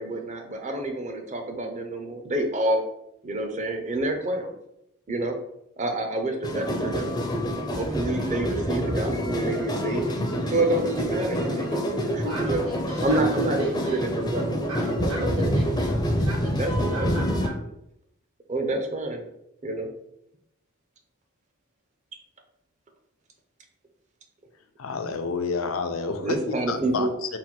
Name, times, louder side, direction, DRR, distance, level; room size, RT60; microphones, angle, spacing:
voice 1, 0.0-2.8 3.2-4.5 5.1-5.4 5.8-7.1 7.8-10.1 10.5-12.6 13.0-14.7 15.0-15.5 16.6-17.1 18.5-19.2 19.6-19.9 26.2-27.1, right 2 dB, 35° right, 3 dB, 0.6 m, -28 dB
sound 1, 6.4-17.5, equal, 20° left, 0.5 m, -27 dB
voice 2, 12.2-14.1 14.7-17.5, right 2 dB, 75° right, -2 dB, 1.3 m, -40 dB
voice 3, 24.8-26.4 26.7-27.4, left 4 dB, 70° left, 7 dB, 0.5 m, -29 dB
4.1 x 2.2 x 4.4 m, 0.79 s
head